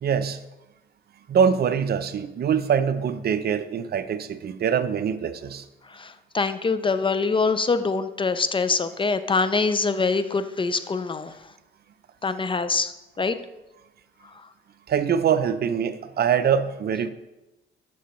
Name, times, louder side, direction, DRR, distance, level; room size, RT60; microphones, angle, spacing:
voice 1, 0.0-0.4 1.3-5.6 14.9-17.1, right 7 dB, 55° right, 11 dB, 0.6 m, -23 dB
voice 2, 6.0-11.3 12.2-12.9 13.2-13.3, left 4 dB, 25° left, 12 dB, 0.4 m, -24 dB
11.5 x 6.0 x 3.1 m, 1.0 s
cardioid pair, 90°, 20 cm